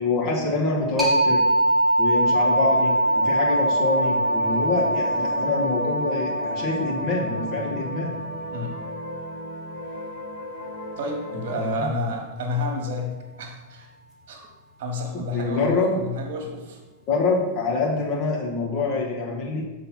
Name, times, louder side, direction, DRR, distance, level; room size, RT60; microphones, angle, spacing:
voice 1, 0.0-1.4 2.0-8.2 11.5-11.9 15.3-16.0 17.1-19.6, left 3 dB, 40° left, -3 dB, 1.5 m, -25 dB
sound 1, 1.0-10.4, right 1 dB, 5° right, 1.4 m, -24 dB
sound 2, 2.1-11.7, left 2 dB, 55° left, 1.5 m, -37 dB
voice 2, 11.0-13.9 14.3-14.4 14.8-16.8, left 1 dB, 50° right, 2 dB, 1.6 m, -30 dB
6.9 x 4.0 x 5.6 m, 1.2 s
figure-of-eight pair, 90°, 0 cm